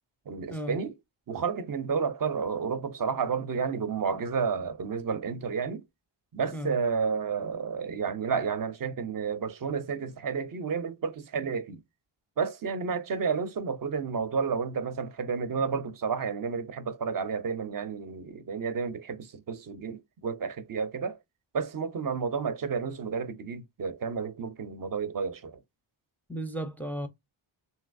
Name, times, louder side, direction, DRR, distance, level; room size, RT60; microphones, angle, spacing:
voice 1, 0.3-1.0 1.3-5.8 6.3-11.8 12.4-21.2 21.5-25.6, right 5 dB, 45° right, 0.5 m, -31 dB
voice 2, 26.3-27.1, right 1 dB, 5° left, 0.4 m, -34 dB
3.2 x 2.8 x 2.4 m
wide cardioid pair, 100°, 49 cm